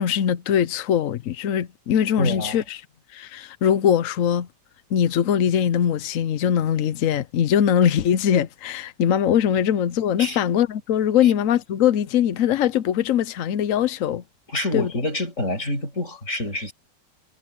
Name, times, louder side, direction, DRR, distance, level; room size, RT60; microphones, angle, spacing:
voice 1, 0.0-2.8 3.1-4.5 4.9-14.2 14.7-14.9, left 9 dB, 60° left, 0.9 m, -21 dB
voice 2, 2.2-2.6 10.2-10.4 11.2-11.3 14.5-16.7, left 1 dB, 40° left, 6.5 m, -27 dB
omnidirectional pair, 1.9 m